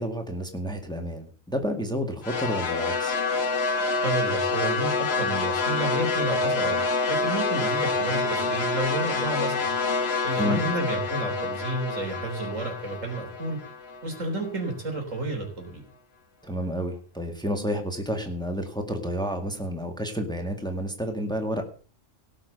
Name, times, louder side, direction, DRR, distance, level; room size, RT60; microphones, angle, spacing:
voice 1, 0.0-3.2 10.4-10.6 16.4-21.6, equal, 5° left, 5 dB, 1.9 m, -30 dB
sound 1, 2.2-14.5, left 4 dB, 55° left, 1.5 m, -27 dB
voice 2, 4.0-6.8 7.1-9.7 10.2-13.6 14.0-15.9, right 2 dB, 75° right, 3 dB, 3.9 m, -31 dB
17.5 x 6.4 x 6.8 m, 0.40 s
omnidirectional pair, 1.3 m